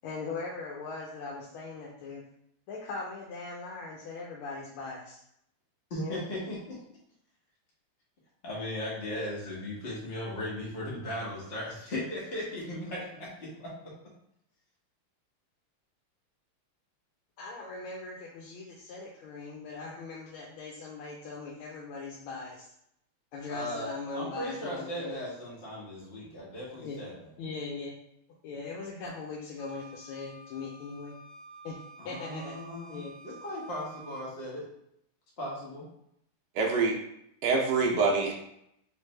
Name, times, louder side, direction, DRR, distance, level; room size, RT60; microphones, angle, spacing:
voice 1, 0.0-2.2 2.7-5.2 6.0-6.2 17.4-22.7 23.3-25.2 26.8-27.1 27.4-28.0 28.4-31.2 31.6-31.8 32.0-32.6 32.9-33.2, left 3 dB, 80° left, -3 dB, 1.4 m, -40 dB
voice 2, 5.9-6.8 8.4-13.9 23.5-27.3 32.0-34.7 35.4-35.8, left 1 dB, 35° left, -6 dB, 1.2 m, -37 dB
Wind instrument woodwind instrument, 29.6-34.3, right 2 dB, 55° right, 1.2 m, -50 dB
voice 3, 36.5-37.0 37.4-38.3, right 4 dB, 70° right, 0 dB, 0.9 m, -25 dB
3.3 x 3.3 x 3.2 m, 0.75 s
omnidirectional pair, 2.3 m